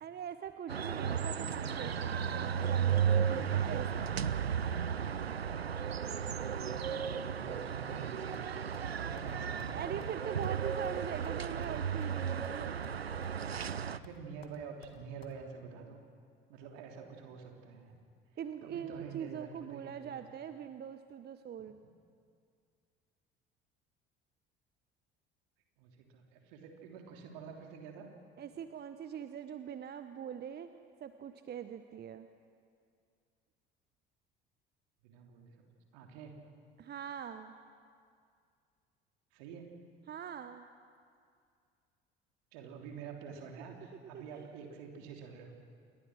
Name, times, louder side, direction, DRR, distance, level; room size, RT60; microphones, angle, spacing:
voice 1, 0.0-4.5 9.6-12.8 18.4-21.8 28.4-30.7 31.0-32.3 36.8-37.5 40.1-40.7 44.1-44.5, right 8 dB, 35° right, 10 dB, 0.9 m, -43 dB
sound 1, 0.7-14.0, right 7 dB, 90° right, 0.5 m, -34 dB
voice 2, 1.4-2.5 6.6-8.6 9.0-9.9 13.9-16.0 16.5-18.0 18.6-20.2 25.8-28.1 35.0-35.6 35.9-36.4 39.3-39.7 42.5-45.5, right 6 dB, 60° right, 2 dB, 3.3 m, -48 dB
sound 2, 8.3-8.9 9.2-9.3 9.6-9.7 10.0-10.2 10.4-10.6 10.8-12.2 12.4-13.0 13.2-13.8 14.0-15.3, left 4 dB, 85° left, 1.5 m, -54 dB
28.0 x 21.5 x 6.3 m, 2.3 s
figure-of-eight pair, 60°, 30 cm